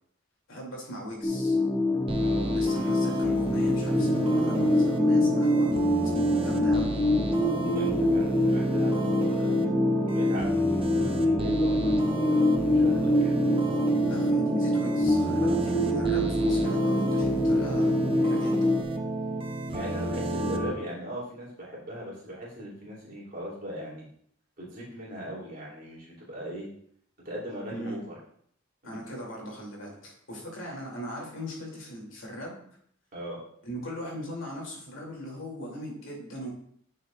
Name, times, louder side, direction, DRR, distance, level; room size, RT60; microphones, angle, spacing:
voice 1, 0.5-1.6 2.5-5.7 6.2-7.0 14.0-18.7 27.7-28.0 28.8-32.6 33.7-36.5, equal, 75° left, -2 dB, 2.7 m, -38 dB
sound 1, 1.2-18.8, left 1 dB, 15° left, 0.5 m, -25 dB
sound 2, 2.1-20.7, right 2 dB, 25° right, 0.7 m, -31 dB
voice 2, 2.2-2.6 7.4-9.8 10.0-13.3 19.7-24.0 24.6-26.7 27.2-28.1 28.8-29.0 33.1-33.4, equal, 45° right, -5 dB, 3.0 m, -39 dB
10.5 x 6.5 x 2.4 m, 0.64 s
head